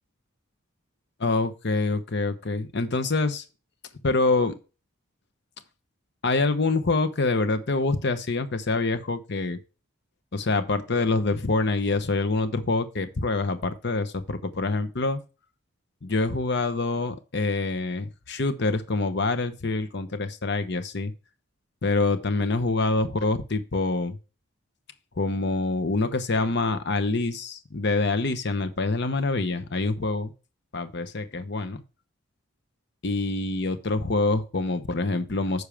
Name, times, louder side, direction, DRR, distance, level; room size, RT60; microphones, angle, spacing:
voice 1, 1.2-3.4 4.0-4.5 6.2-9.6 10.3-15.2 16.0-21.1 21.8-24.2 25.2-30.3 30.7-31.8 33.0-35.7, left 3 dB, 55° left, 10 dB, 0.9 m, -26 dB
10.0 x 6.3 x 3.4 m, 0.32 s
head